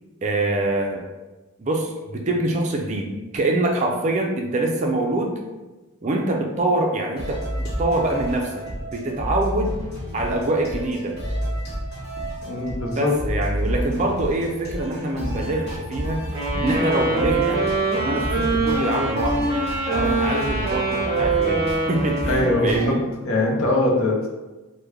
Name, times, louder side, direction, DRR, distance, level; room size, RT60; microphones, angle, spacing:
voice 1, 0.2-1.0 1.6-5.4 6.0-9.8 10.1-11.2 12.8-16.3 16.5-17.6 17.9-19.5 19.9-23.0, right 2 dB, 35° right, 1 dB, 0.3 m, -25 dB
sound 1, 7.2-22.9, equal, 50° left, 1.1 m, -30 dB
voice 2, 12.5-13.1 22.3-22.9 23.2-24.3, left 1 dB, 75° left, -1 dB, 0.7 m, -22 dB
sound 2, 16.3-22.9, right 3 dB, 20° right, 0.7 m, -24 dB
3.3 x 2.1 x 3.4 m, 1.2 s
head